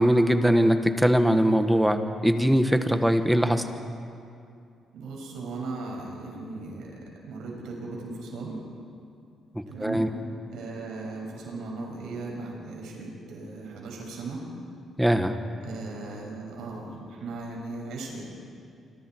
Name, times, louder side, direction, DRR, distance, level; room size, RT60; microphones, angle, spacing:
voice 1, 0.0-3.6 9.5-10.1 15.0-15.4, equal, 5° right, 7 dB, 1.6 m, -21 dB
voice 2, 4.9-8.6 9.7-10.1 10.5-14.4 15.6-18.3, right 3 dB, 85° right, -1 dB, 6.5 m, -37 dB
27.5 x 25.0 x 4.7 m, 2.4 s
cardioid pair, 80°, 0 cm